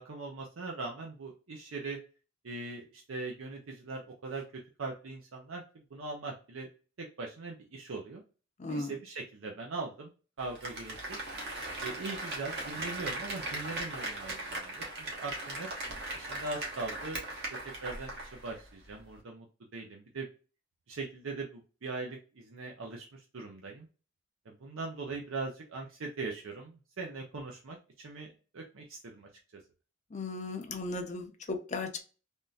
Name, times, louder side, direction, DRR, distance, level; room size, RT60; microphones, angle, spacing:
voice 1, 0.0-2.0 2.4-4.4 4.8-5.6 5.9-6.7 7.0-8.2 8.7-10.1 10.4-11.2 11.8-14.8 15.1-15.7 16.1-17.4 17.8-19.5 19.7-20.3 20.9-23.9 24.5-28.3 28.5-29.3, right 3 dB, 70° right, 1 dB, 0.6 m, -40 dB
voice 2, 8.6-8.9 30.1-32.0, left 3 dB, 35° left, 6 dB, 0.6 m, -36 dB
Applause, 10.4-18.6 18.9-19.0, right 2 dB, 55° right, 1.1 m, -39 dB
3.5 x 2.6 x 2.3 m, 0.34 s
head